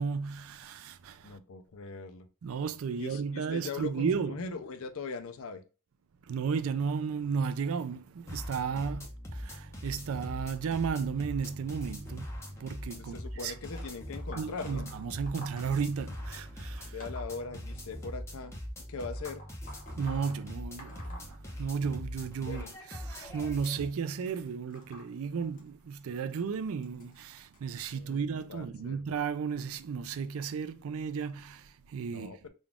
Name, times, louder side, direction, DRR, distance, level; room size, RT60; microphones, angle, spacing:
voice 1, 0.0-1.4 2.4-4.3 6.3-9.1 9.3-13.2 13.4-13.5 14.3-16.9 20.0-22.6 23.0-32.3, right 6 dB, 65° right, 0.4 m, -34 dB
voice 2, 1.2-2.3 2.9-5.6 8.9-9.0 13.0-14.9 16.9-18.6 18.9-19.4 22.5-22.8 27.9-29.1 32.1-32.5, left 4 dB, 65° left, 0.5 m, -41 dB
sound 1, 8.3-23.9, equal, 10° left, 0.8 m, -42 dB
sound 2, 13.0-18.2 18.9-22.0 22.2-27.6 28.4-28.6 29.7-29.8 30.7-30.8 31.5-31.6, left 1 dB, 40° left, 1.1 m, -52 dB
3.8 x 2.4 x 3.4 m
head